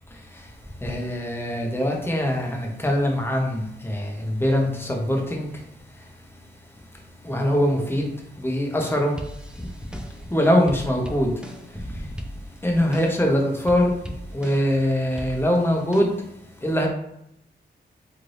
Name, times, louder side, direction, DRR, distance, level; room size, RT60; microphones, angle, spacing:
voice 1, 0.8-5.5 7.2-8.1 8.4-9.1 10.3-11.3 12.6-13.9 14.3-16.1 16.6-16.9, equal, 10° left, 0.9 m, -22 dB
sound 1, 8.8-10.3 10.7-11.8 12.2-13.3 13.7-14.8 15.2-16.0, equal, 5° right, 0.4 m, -39 dB
3.3 x 2.7 x 2.6 m
cardioid pair, 50°, 19 cm